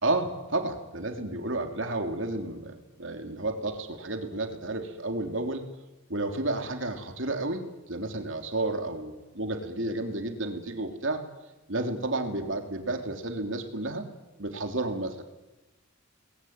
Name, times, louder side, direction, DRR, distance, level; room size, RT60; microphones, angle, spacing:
voice 1, 0.0-5.6 6.1-11.2 11.7-14.0 14.4-15.2, right 2 dB, 65° right, 5 dB, 3.4 m, -31 dB
30.0 x 21.0 x 9.6 m, 1.1 s
head